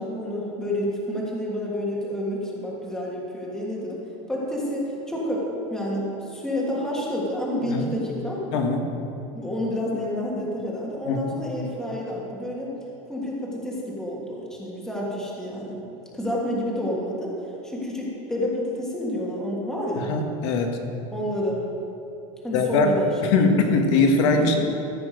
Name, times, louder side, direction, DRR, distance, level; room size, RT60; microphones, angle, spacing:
voice 1, 0.0-4.0 4.3-8.4 9.3-12.7 13.1-15.8 16.1-17.3 17.6-20.1 21.1-21.6 22.4-23.4 23.8-24.6, left 1 dB, 5° left, -4 dB, 1.6 m, -29 dB
voice 2, 8.5-8.9 11.1-11.3 20.0-20.8 22.5-22.9 23.2-24.6, left 3 dB, 55° left, 4 dB, 1.5 m, -21 dB
14.5 x 8.4 x 5.1 m, 2.8 s
supercardioid pair, 170°, 18 cm